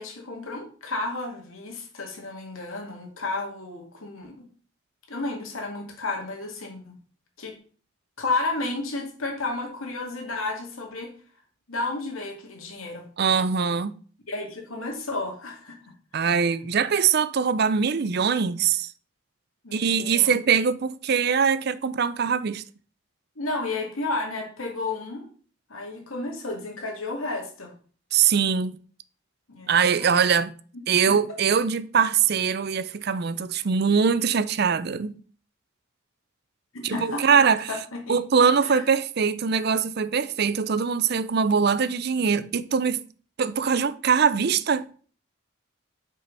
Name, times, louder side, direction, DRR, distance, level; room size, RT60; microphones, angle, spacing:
voice 1, 0.0-4.3 5.1-7.0 7.4-7.5 8.2-11.1 11.7-13.0 14.3-15.8 16.2-16.3 19.6-20.4 23.4-25.2 25.7-27.7 29.5-30.2 31.1-31.2 36.7-37.2 37.7-38.2 38.6-38.8, left 3 dB, 90° left, 2.5 m, -32 dB
voice 2, 13.2-14.0 16.1-18.9 19.7-22.6 28.1-28.8 29.7-30.5 30.9-35.2 36.8-37.7 38.1-43.0 43.4-44.9, right 6 dB, 50° right, 0.5 m, -22 dB
6.3 x 5.4 x 5.4 m
head